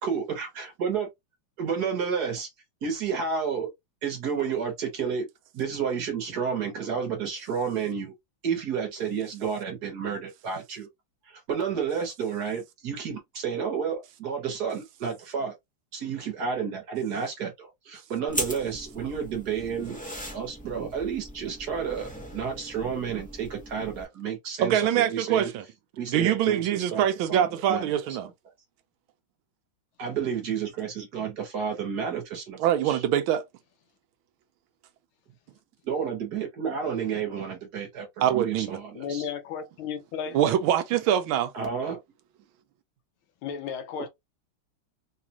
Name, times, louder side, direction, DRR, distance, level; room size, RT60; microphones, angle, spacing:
voice 1, 0.0-1.1 1.6-2.5 2.8-3.7 4.0-5.3 5.5-8.1 8.4-10.9 11.3-15.5 15.9-20.0 20.3-25.5 26.0-27.0 27.3-27.9 30.0-32.6 32.8-33.0 35.9-39.3 41.5-42.0, right 6 dB, 55° right, 1.5 m, -31 dB
sound 1, 18.3-24.0, equal, 10° left, 0.5 m, -39 dB
voice 2, 24.6-25.6 26.1-28.3 32.6-33.4 38.2-38.8 40.3-41.5, right 10 dB, 80° right, 1.4 m, -24 dB
voice 3, 38.9-40.4 43.4-44.1, left 7 dB, 80° left, 1.6 m, -34 dB
4.1 x 2.4 x 2.8 m
omnidirectional pair, 2.3 m